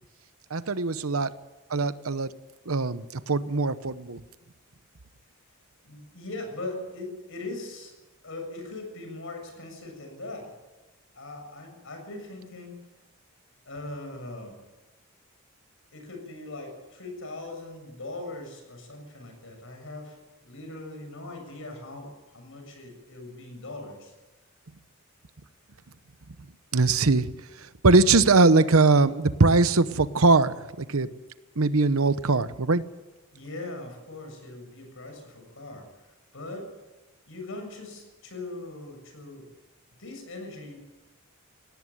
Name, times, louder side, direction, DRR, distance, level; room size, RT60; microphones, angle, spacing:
voice 1, 0.5-1.3 1.7-2.3 2.7-4.2 26.7-27.3 27.8-31.1 31.6-32.8, right 3 dB, 75° right, 14 dB, 0.9 m, -21 dB
voice 2, 5.8-7.9 8.2-10.6 11.1-12.8 13.7-14.6 15.9-20.2 20.4-24.1 33.3-35.9 36.3-36.8 37.3-39.5 40.0-40.8, left 2 dB, 65° left, 4 dB, 7.4 m, -40 dB
18.5 x 17.5 x 9.3 m, 1.1 s
head